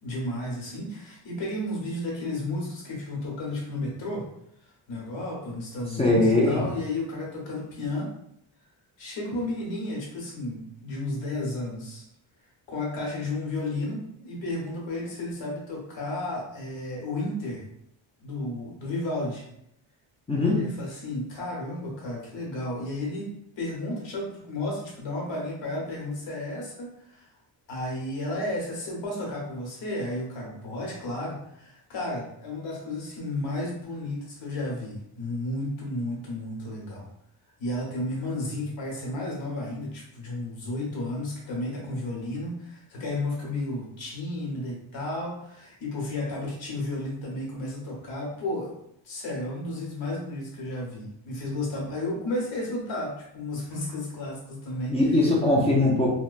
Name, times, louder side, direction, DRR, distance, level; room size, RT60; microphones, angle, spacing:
voice 1, 0.0-4.3 4.6-8.1 9.0-12.0 12.7-17.6 18.2-19.5 20.6-23.3 23.6-27.2 27.7-37.1 37.6-48.7 49.0-55.2, left 1 dB, 65° left, -3 dB, 1.1 m, -33 dB
voice 2, 6.0-6.6 20.3-20.6 54.9-56.1, left 2 dB, 15° left, -4 dB, 0.4 m, -21 dB
2.8 x 2.1 x 2.4 m, 0.74 s
wide cardioid pair, 145°, 48 cm